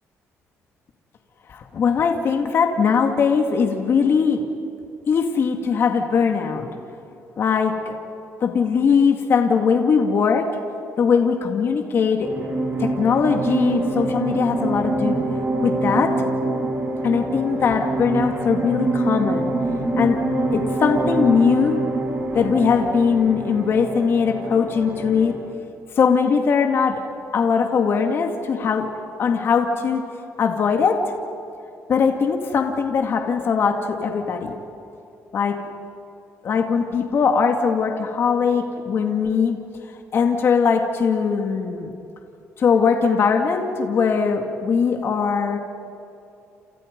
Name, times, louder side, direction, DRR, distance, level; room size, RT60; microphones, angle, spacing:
voice 1, 1.5-4.5 5.1-6.7 7.4-8.1 8.4-10.5 11.0-12.3 12.8-15.2 15.6-16.2 17.0-19.5 20.0-20.2 20.5-21.8 22.3-25.3 26.0-27.0 27.3-28.9 29.2-30.0 30.4-31.0 31.9-34.6 35.3-35.6 36.4-39.6 40.1-41.9 42.6-45.6, left 6 dB, 50° left, 4 dB, 2.3 m, -20 dB
sound 1, 12.2-25.5, right 2 dB, 35° right, 5.6 m, -25 dB
29.5 x 28.5 x 5.4 m, 2.8 s
cardioid pair, 125°, 5 cm